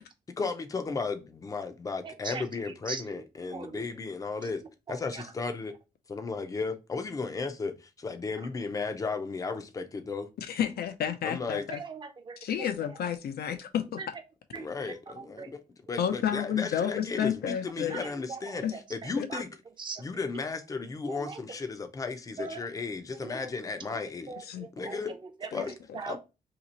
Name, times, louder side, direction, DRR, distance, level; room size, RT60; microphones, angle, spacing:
voice 1, 0.4-4.6 4.9-5.7 6.1-10.3 11.2-11.6 14.5-15.6 15.9-18.6 18.9-19.5 20.0-24.3 24.8-25.1 25.5-25.7 26.1-26.2, left 4 dB, 20° left, 0.5 m, -34 dB
voice 2, 2.0-2.4 2.9-3.0 3.5-3.9 4.9-5.2 11.7-12.7 14.0-14.1 14.5-15.5 17.9-19.4 19.8-20.0 21.1-21.4 22.4-22.7 23.2-24.0 24.3-26.2, right 5 dB, 30° right, 0.6 m, -41 dB
voice 3, 10.4-11.8 12.4-14.0 16.0-18.0 18.6-18.7 19.2-19.3 24.5-24.7 25.5-25.6, left 9 dB, 85° left, 0.6 m, -31 dB
2.9 x 2.8 x 4.0 m
wide cardioid pair, 175°, 16 cm